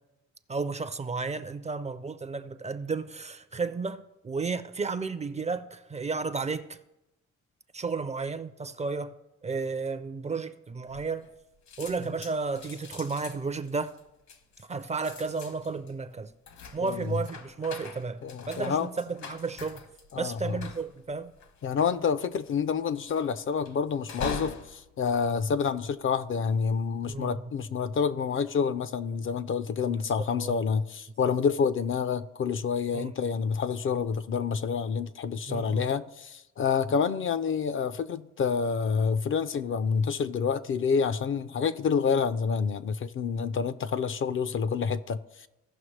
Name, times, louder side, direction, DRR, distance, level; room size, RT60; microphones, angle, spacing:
voice 1, 0.5-6.8 7.7-9.1 9.4-11.3 11.8-13.9 14.6-16.3 16.7-18.2 18.5-19.8 20.2-21.3 27.1-27.5 30.0-30.1 30.4-30.6 31.2-31.3 32.9-33.1 35.5-35.9, right 4 dB, 25° right, 0.4 m, -33 dB
sound 1, 10.9-11.4 11.7-26.2 26.8-27.2, left 5 dB, 65° left, 1.1 m, -43 dB
voice 2, 16.8-17.2 18.2-18.9 20.1-20.6 21.6-45.5, left 6 dB, 45° left, 0.4 m, -28 dB
16.0 x 5.8 x 3.2 m
cardioid pair, 90°, 30 cm